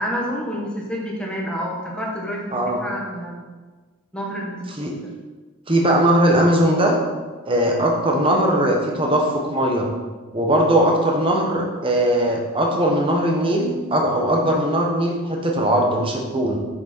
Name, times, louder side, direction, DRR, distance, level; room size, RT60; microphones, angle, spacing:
voice 1, 0.0-3.4 4.1-4.9 8.3-8.5, equal, 5° left, -3 dB, 1.2 m, -28 dB
voice 2, 5.7-7.0 7.4-9.9 10.3-16.6, right 1 dB, 25° right, 0 dB, 1.0 m, -19 dB
6.7 x 6.2 x 4.4 m, 1.3 s
head